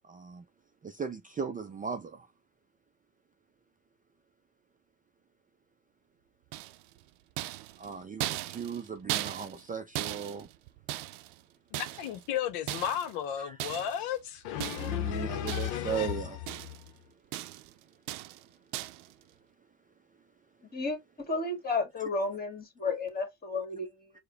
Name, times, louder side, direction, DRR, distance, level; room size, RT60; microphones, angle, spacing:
voice 1, 0.0-0.5 0.8-2.3 7.8-10.5 13.4-13.6 14.6-16.4, right 6 dB, 20° right, 0.5 m, -37 dB
sound 1, 6.5-7.0 7.4-9.7 9.9-11.4 11.7-12.3 12.7-13.2 13.6-14.0 14.6-15.1 15.5-16.0 16.2-16.9 17.3-17.7 18.1-18.4 18.7-19.1, right 16 dB, 65° right, 0.6 m, -37 dB
voice 2, 11.7-16.2, left 10 dB, 65° left, 0.8 m, -33 dB
voice 3, 21.3-24.1, left 3 dB, 20° left, 1.8 m, -32 dB
4.7 x 2.2 x 3.9 m
hypercardioid pair, 70°, 45 cm